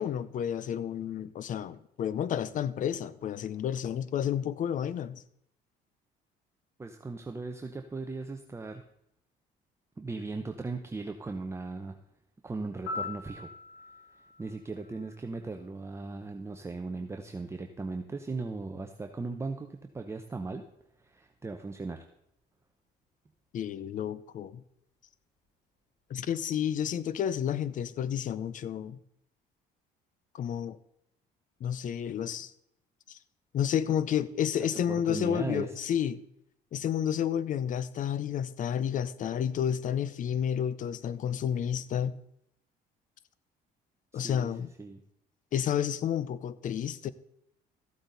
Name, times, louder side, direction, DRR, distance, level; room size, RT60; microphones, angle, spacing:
voice 1, 0.0-5.2 23.5-24.6 26.1-29.0 30.3-30.8 31.6-32.5 33.1-33.2 33.5-36.2 36.7-42.2 44.1-44.7 45.5-47.1, left 9 dB, 50° left, 0.6 m, -31 dB
voice 2, 6.8-8.8 10.0-12.0 12.4-13.5 14.2-20.6 21.0-22.0 34.6-35.8 44.1-44.5 44.8-45.0, right 3 dB, 15° right, 0.8 m, -38 dB
Piano, 12.9-15.8 23.9-24.1, left 3 dB, 85° left, 3.5 m, -42 dB
14.0 x 8.0 x 4.0 m
cardioid pair, 110°, 17 cm